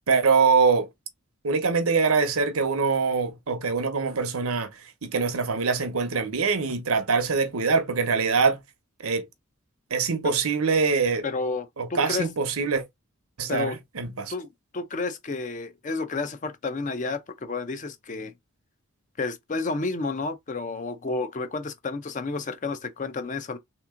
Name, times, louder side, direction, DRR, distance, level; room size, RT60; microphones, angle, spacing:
voice 1, 0.1-0.9 1.4-4.7 5.0-8.6 9.0-9.3 9.9-11.3 11.8-12.8 13.4-14.3, right 5 dB, 80° right, 0.8 m, -23 dB
voice 2, 11.2-12.3 13.5-13.8 14.3-18.3 19.2-23.6, left 3 dB, 35° left, 0.5 m, -31 dB
3.5 x 2.9 x 3.6 m
head